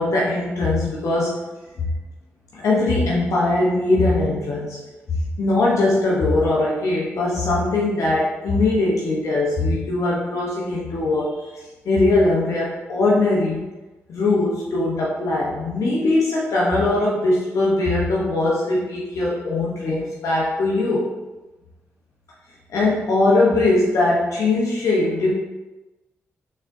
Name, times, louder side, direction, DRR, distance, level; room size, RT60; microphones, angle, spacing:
voice 1, 0.0-1.4 1.8-1.9 2.5-4.8 5.4-13.6 14.1-21.1 22.7-25.3, left 2 dB, 70° left, -5 dB, 0.8 m, -21 dB
4.1 x 3.6 x 2.6 m, 1.1 s
supercardioid pair, 50°, 6 cm